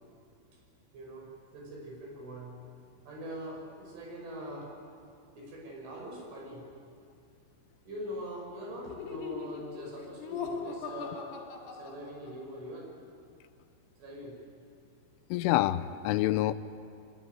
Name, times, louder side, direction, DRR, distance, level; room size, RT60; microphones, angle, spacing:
voice 1, 0.9-2.6 3.1-4.7 5.3-6.7 7.8-11.3 11.7-12.9 14.0-14.4, equal, 75° right, -1 dB, 8.1 m, -42 dB
Laughter, 8.9-12.6, left 6 dB, 65° left, 4.0 m, -40 dB
voice 2, 15.3-16.5, left 15 dB, 90° left, 13 dB, 3.3 m, -27 dB
24.5 x 23.5 x 9.5 m, 2.4 s
omnidirectional pair, 5.5 m